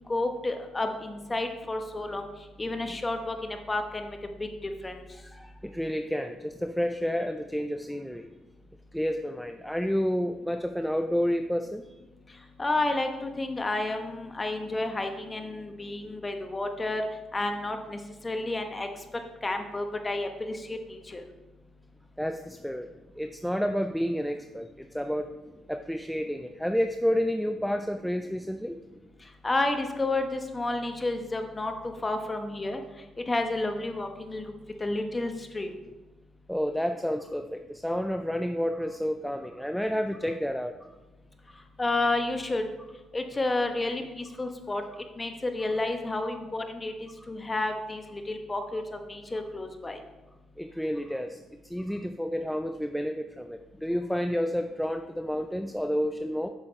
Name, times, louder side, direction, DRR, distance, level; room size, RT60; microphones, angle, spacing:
voice 1, 0.1-2.3 2.6-5.0 12.6-17.0 17.3-18.0 18.2-18.9 19.4-21.2 29.4-32.8 33.3-34.4 34.8-35.7 41.8-42.6 43.1-44.8 45.2-50.0, left 2 dB, 20° left, 5 dB, 1.0 m, -31 dB
voice 2, 5.3-8.3 8.9-11.8 22.2-22.9 23.2-25.3 25.7-28.7 36.5-40.7 50.6-56.5, equal, ahead, 7 dB, 0.4 m, -30 dB
8.4 x 6.4 x 3.2 m, 1.1 s
cardioid pair, 90°, 0 cm